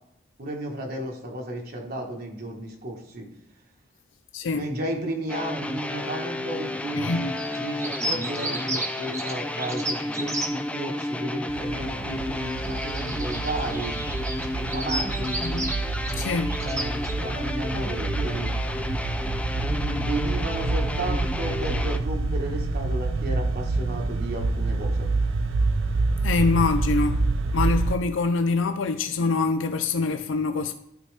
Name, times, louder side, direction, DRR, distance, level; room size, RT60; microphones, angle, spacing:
voice 1, 0.4-3.3 4.5-14.0 14.6-15.4 16.6-18.5 19.6-25.1, right 1 dB, 50° right, 1.2 m, -33 dB
voice 2, 4.3-4.6 6.9-7.3 15.4-15.7 16.2-16.6 26.2-27.2 27.5-30.7, left 4 dB, 80° left, 0.5 m, -25 dB
sound 1, 5.3-22.0, left 1 dB, 5° left, 0.3 m, -32 dB
sound 2, 7.3-10.5 11.0-11.1 12.5-17.2, right 1 dB, 15° right, 0.8 m, -33 dB
sound 3, 11.5-28.0, right 3 dB, 85° right, 0.5 m, -27 dB
12.0 x 4.4 x 3.2 m
head